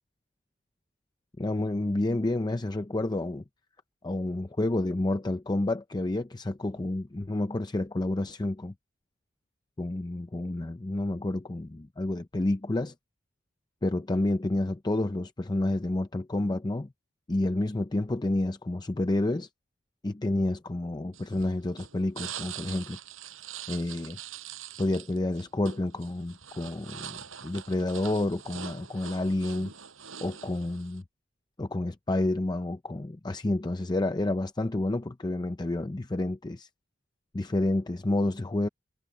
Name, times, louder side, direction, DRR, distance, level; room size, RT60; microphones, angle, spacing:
voice 1, 1.4-3.4 4.0-8.7 9.8-12.9 13.8-16.9 17.3-19.5 20.0-23.0 23.7-24.2 24.8-29.7 30.2-31.0 31.6-36.7 37.3-38.7, left 2 dB, 20° left, 0.6 m, -29 dB
sound 1, 21.1-31.0, right 9 dB, 90° right, 5.6 m, -43 dB
head